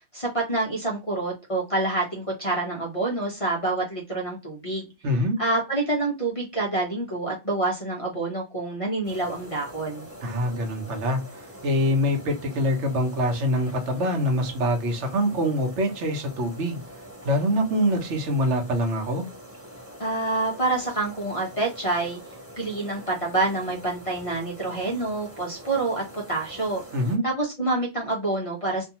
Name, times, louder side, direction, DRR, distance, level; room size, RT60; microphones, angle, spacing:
voice 1, 0.1-4.8 5.4-10.1 20.0-22.2 22.6-26.8 27.2-28.9, right 2 dB, 40° left, 0.5 m, -27 dB
voice 2, 5.0-5.4 10.2-16.8 17.2-19.3 26.9-27.2, equal, 70° right, 1.0 m, -24 dB
sound 1, 9.0-27.2, right 1 dB, 15° right, 0.9 m, -44 dB
2.6 x 2.3 x 2.7 m
omnidirectional pair, 1.3 m